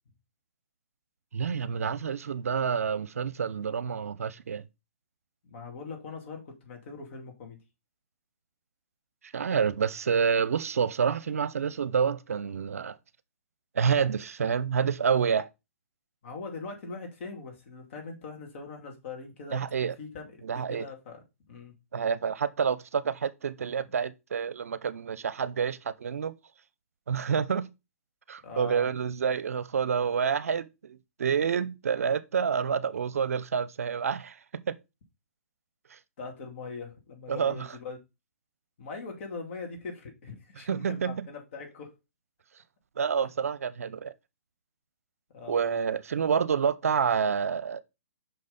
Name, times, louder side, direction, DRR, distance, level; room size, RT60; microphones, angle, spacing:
voice 1, 1.3-4.6 9.3-13.0 13.7-15.5 19.5-19.9 20.4-20.9 21.9-26.3 27.1-27.7 28.3-34.8 35.9-36.0 37.3-37.6 40.7-41.3 43.0-44.1 45.5-47.8, right 6 dB, 70° right, 0.6 m, -28 dB
voice 2, 5.4-7.6 16.2-19.7 20.0-21.7 28.4-28.9 36.2-38.0 38.8-42.0 45.3-45.8, left 4 dB, 50° left, 2.5 m, -41 dB
5.9 x 5.3 x 3.9 m
hypercardioid pair, 135°, 8 cm